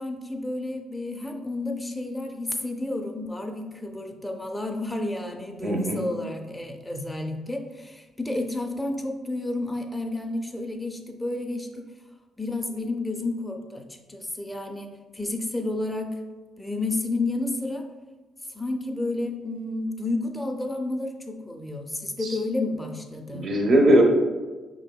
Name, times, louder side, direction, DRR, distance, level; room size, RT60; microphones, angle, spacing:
voice 1, 0.0-11.9 12.4-16.1 16.6-17.9 18.5-23.5, left 2 dB, 10° left, 3 dB, 0.5 m, -31 dB
voice 2, 5.6-6.0 22.2-22.4 23.3-24.0, right 1 dB, 50° right, 1 dB, 0.7 m, -20 dB
5.1 x 3.5 x 2.2 m, 1.3 s
cardioid pair, 90°, 0 cm